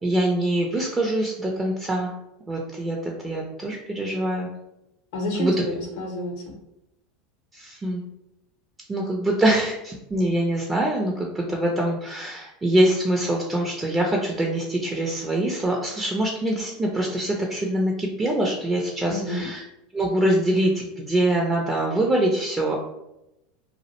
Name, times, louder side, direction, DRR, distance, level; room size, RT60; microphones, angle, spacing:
voice 1, 0.0-2.1 2.5-4.5 5.4-5.5 7.5-8.0 8.9-19.6 19.9-22.8, right 1 dB, 20° right, -1 dB, 0.4 m, -24 dB
voice 2, 5.1-6.6 19.1-19.5, left 1 dB, 65° left, 1 dB, 0.6 m, -29 dB
2.3 x 2.0 x 2.8 m, 0.88 s
hypercardioid pair, 80°, 0 cm